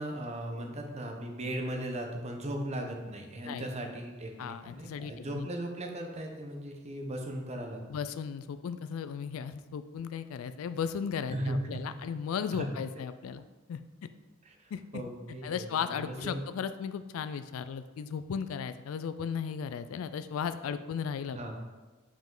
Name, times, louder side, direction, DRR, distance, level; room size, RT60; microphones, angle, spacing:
voice 1, 0.0-7.8 11.3-12.0 12.5-12.7 14.4-16.4 21.3-21.5, right 1 dB, 30° right, 2 dB, 0.8 m, -37 dB
voice 2, 4.4-5.5 7.9-13.4 13.7-13.8 14.7-14.8 15.4-21.5, left 7 dB, 80° left, 12 dB, 0.3 m, -36 dB
5.4 x 5.1 x 3.8 m, 1.2 s
head